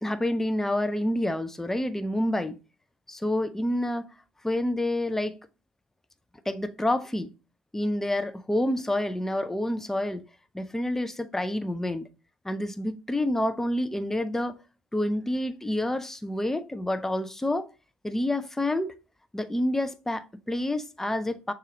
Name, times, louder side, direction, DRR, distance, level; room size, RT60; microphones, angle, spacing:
voice 1, 0.0-2.6 3.1-4.1 4.4-5.4 6.5-7.3 7.7-10.2 10.5-12.1 12.4-14.6 14.9-17.7 18.0-18.9 19.3-21.5, left 1 dB, 5° left, 0.5 m, -28 dB
6.4 x 2.4 x 2.8 m
hypercardioid pair, 65°, 6 cm